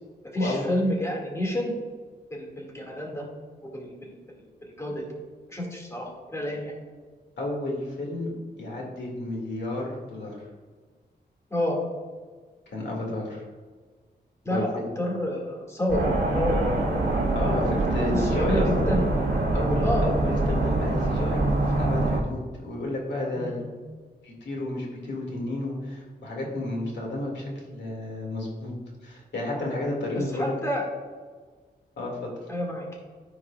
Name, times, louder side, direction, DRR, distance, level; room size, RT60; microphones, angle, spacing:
voice 1, 0.3-1.7 2.3-3.2 3.6-4.1 4.6-5.0 5.5-6.7 11.5-11.8 14.4-16.1 16.3-16.8 18.1-19.1 19.8-20.1 23.3-23.7 30.1-30.9 32.5-32.9, left 1 dB, 15° left, -2 dB, 2.0 m, -29 dB
voice 2, 7.4-8.3 8.6-10.4 12.7-13.4 14.5-14.9 17.3-18.8 19.5-23.6 24.2-28.7 29.0-30.5 32.0-32.3, left 1 dB, 90° left, -2 dB, 2.1 m, -31 dB
sound 1, 15.9-22.2, right 2 dB, 65° right, 1.7 m, -24 dB
14.0 x 4.8 x 2.4 m, 1.5 s
wide cardioid pair, 120°, 18 cm